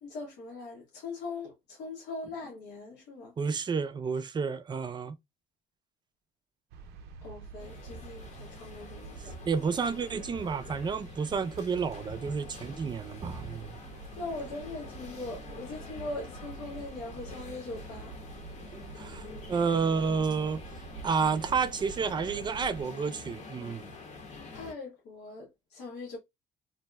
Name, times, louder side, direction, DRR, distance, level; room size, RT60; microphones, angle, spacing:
voice 1, 0.0-3.3 7.2-9.3 14.2-18.1 24.5-26.2, left 3 dB, 80° left, 1.0 m, -41 dB
voice 2, 3.4-5.1 9.5-13.8 18.7-20.6 21.0-23.9, right 5 dB, 25° right, 0.4 m, -30 dB
sound 1, 6.7-22.8, right 5 dB, 80° right, 0.5 m, -47 dB
sound 2, 7.6-24.7, left 3 dB, 45° left, 0.8 m, -47 dB
2.6 x 2.1 x 3.2 m
cardioid pair, 110°, 17 cm